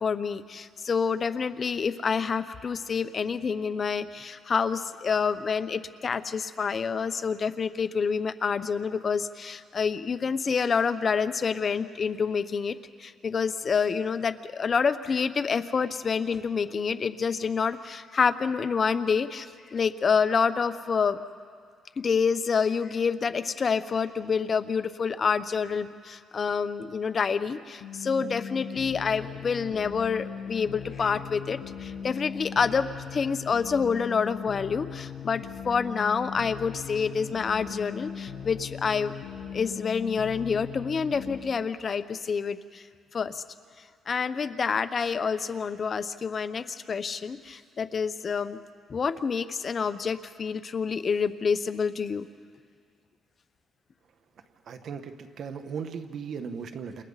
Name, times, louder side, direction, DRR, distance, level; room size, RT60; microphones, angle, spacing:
voice 1, 0.0-21.2 22.0-39.1 39.5-42.8 43.1-43.4 44.1-48.6 48.9-52.3, left 5 dB, 45° left, 11 dB, 1.0 m, -28 dB
sound 1, 27.8-41.4, left 7 dB, 80° left, 6.6 m, -39 dB
voice 2, 54.7-57.0, right 6 dB, 65° right, 7 dB, 1.6 m, -37 dB
28.5 x 28.5 x 4.2 m, 2.1 s
cardioid pair, 90°, 0 cm